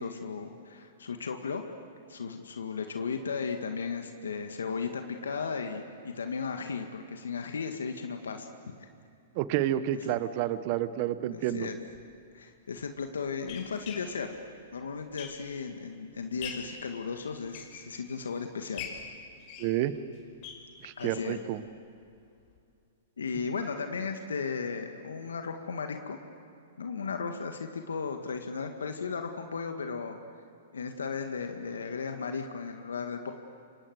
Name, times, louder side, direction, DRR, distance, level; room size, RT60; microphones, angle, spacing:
voice 1, 0.0-1.6 2.1-8.5 9.9-10.2 11.3-11.8 12.3-14.3 14.7-18.9 21.0-21.4 23.2-26.2 26.8-30.2 30.7-33.3, left 5 dB, 90° left, 5 dB, 1.9 m, -35 dB
voice 2, 9.3-11.7 19.6-19.9 20.8-21.6, right 13 dB, 45° right, 13 dB, 1.3 m, -29 dB
sound 1, 11.9-12.0 12.8-15.7 16.1-16.8 17.3-18.3 18.7-21.3 21.6-21.7 22.0-22.1 22.5-22.6, left 7 dB, 45° left, 5.2 m, -44 dB
29.0 x 25.5 x 8.1 m, 2.5 s
hypercardioid pair, 125°, 0 cm